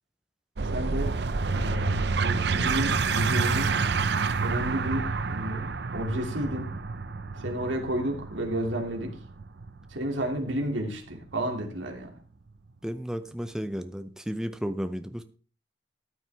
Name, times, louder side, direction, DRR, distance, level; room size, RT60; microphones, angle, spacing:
sound 1, 0.6-11.7, right 4 dB, 60° right, 0.6 m, -29 dB
voice 1, 0.6-1.1 1.5-1.9 2.2-3.8 4.4-6.7 7.4-9.1 9.9-12.1, right 1 dB, 85° right, 2 dB, 2.4 m, -31 dB
voice 2, 12.8-15.2, equal, 5° right, 9 dB, 0.6 m, -33 dB
14.0 x 9.0 x 3.4 m, 0.40 s
head